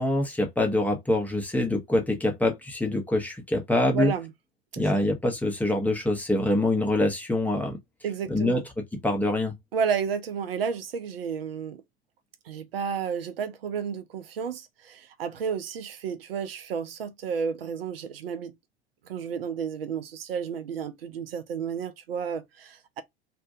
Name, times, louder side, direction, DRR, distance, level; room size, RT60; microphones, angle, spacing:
voice 1, 0.0-4.1 4.8-7.8 8.3-8.6 9.0-9.5, left 1 dB, 5° left, 0.5 m, -25 dB
voice 2, 3.9-4.3 4.7-5.1 8.0-8.6 9.7-11.8 12.5-18.6 19.1-23.0, right 6 dB, 65° right, 0.5 m, -32 dB
2.5 x 2.2 x 2.5 m
figure-of-eight pair, 80°, 31 cm